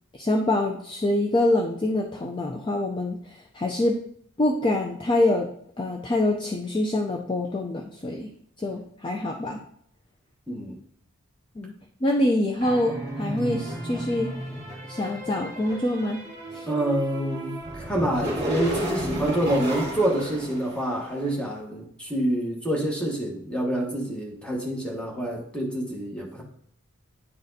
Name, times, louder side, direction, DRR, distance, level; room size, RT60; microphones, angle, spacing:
voice 1, 0.1-4.0 4.4-5.5 5.8-8.3 8.6-9.6 11.6-11.7 12.0-14.3 14.9-16.2 16.5-16.7, left 1 dB, 20° left, 0.4 m, -25 dB
voice 2, 10.5-10.8 16.7-26.4, right 1 dB, 5° left, 1.0 m, -27 dB
sound 1, 12.6-21.3, right 1 dB, 30° right, 2.0 m, -33 dB
9.5 x 4.1 x 2.6 m
head